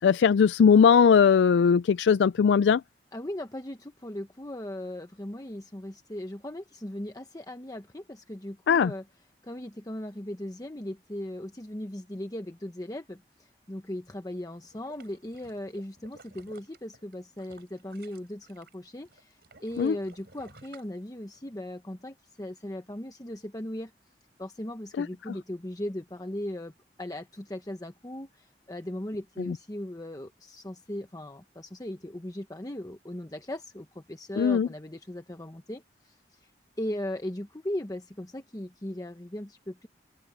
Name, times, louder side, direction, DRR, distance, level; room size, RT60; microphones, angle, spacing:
voice 1, 0.0-2.8 8.7-8.9 19.8-19.9 25.0-25.1 34.4-34.7, left 6 dB, 85° left, 0.3 m, -19 dB
voice 2, 3.1-9.0 9.4-23.9 24.4-26.7 27.0-36.5 36.8-39.9, left 1 dB, 20° left, 0.9 m, -38 dB
sound 1, 14.6-18.7 19.1-21.6 22.0-22.1, right 3 dB, 65° right, 5.0 m, -55 dB
head